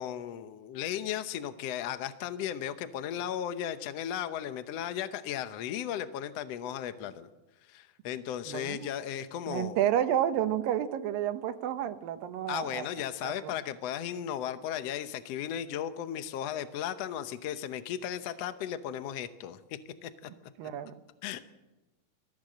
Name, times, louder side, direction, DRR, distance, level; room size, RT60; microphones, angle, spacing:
voice 1, 0.0-7.3 7.6-9.8 12.5-20.3 21.2-21.4, left 10 dB, 80° left, 10 dB, 1.4 m, -36 dB
voice 2, 8.5-8.9 9.5-12.9 13.2-13.5 20.6-20.9, right 10 dB, 80° right, 9 dB, 2.7 m, -30 dB
24.5 x 14.5 x 7.7 m, 1.1 s
omnidirectional pair, 4.1 m